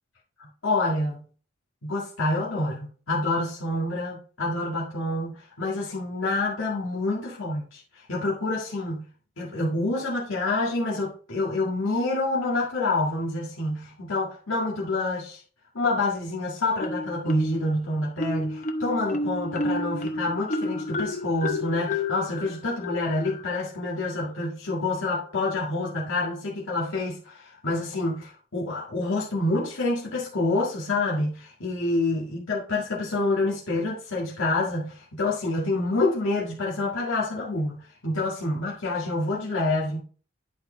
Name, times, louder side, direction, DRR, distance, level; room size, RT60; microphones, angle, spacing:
voice 1, 0.4-1.2 1.8-9.1 9.4-15.4 15.7-40.0, left 2 dB, 85° left, -5 dB, 1.8 m, -27 dB
Marimba xylophone, 16.8-17.7 18.2-23.7, left 2 dB, 35° left, 0.7 m, -31 dB
11.0 x 4.4 x 3.8 m, 0.42 s
head